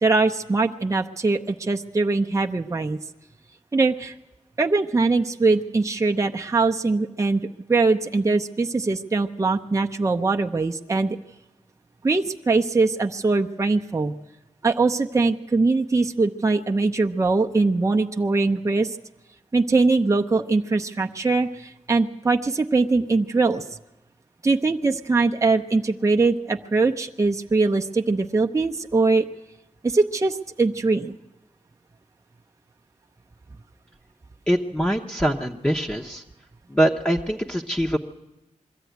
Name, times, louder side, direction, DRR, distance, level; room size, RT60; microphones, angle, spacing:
voice 1, 0.0-3.0 3.7-4.1 4.6-7.4 7.7-11.2 12.0-14.1 14.6-19.0 19.5-23.6 24.4-29.3 29.8-31.2, right 3 dB, 25° right, 3 dB, 0.7 m, -22 dB
voice 2, 34.5-36.2 36.7-38.0, right 1 dB, 10° left, 0 dB, 0.9 m, -23 dB
22.0 x 14.0 x 9.3 m, 1.0 s
wide cardioid pair, 110°, 12 cm